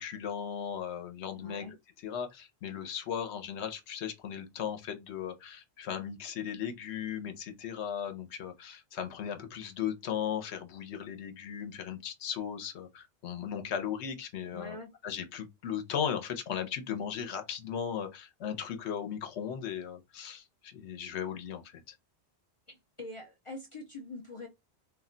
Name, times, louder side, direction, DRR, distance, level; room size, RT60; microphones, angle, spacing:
voice 1, 0.0-1.6 2.0-14.8 15.0-22.0, left 8 dB, 80° left, 1.0 m, -37 dB
voice 2, 1.4-1.7 14.5-14.9 22.7-24.5, left 2 dB, 45° left, 0.4 m, -44 dB
2.4 x 2.1 x 3.7 m
omnidirectional pair, 1.1 m